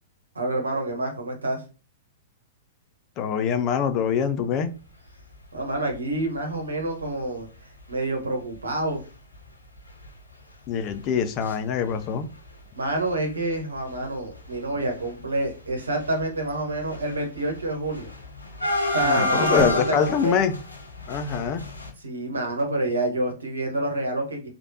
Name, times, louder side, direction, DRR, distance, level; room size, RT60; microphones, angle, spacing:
voice 1, 0.3-1.6 5.5-7.5 7.9-9.0 12.7-18.1 18.9-20.4 22.0-24.5, right 2 dB, 80° right, 1.1 m, -27 dB
voice 2, 3.2-4.7 10.7-12.3 19.0-20.5 21.1-21.6, left 7 dB, 35° left, 0.5 m, -24 dB
sound 1, 5.9-6.1 6.6-6.7 6.9-7.1 7.9-8.0 8.4-8.6 8.8-9.0 9.3-11.5 11.8-12.5 12.8-21.9, left 2 dB, 90° left, 0.9 m, -31 dB
sound 2, 16.4-17.1 17.4-17.5 19.4-20.3 21.8-22.8, right 1 dB, 5° right, 0.8 m, -38 dB
3.2 x 2.5 x 2.7 m
figure-of-eight pair, 105°, 0 cm